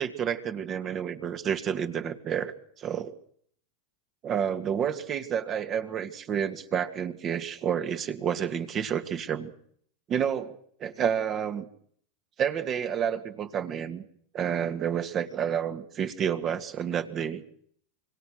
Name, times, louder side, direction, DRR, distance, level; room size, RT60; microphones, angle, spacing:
voice 1, 0.0-3.1 4.2-9.5 10.1-11.7 12.4-14.0 14.3-17.4, right 8 dB, 35° right, 8 dB, 2.1 m, -30 dB
26.0 x 22.5 x 6.5 m, 0.64 s
hypercardioid pair, 105°, 0 cm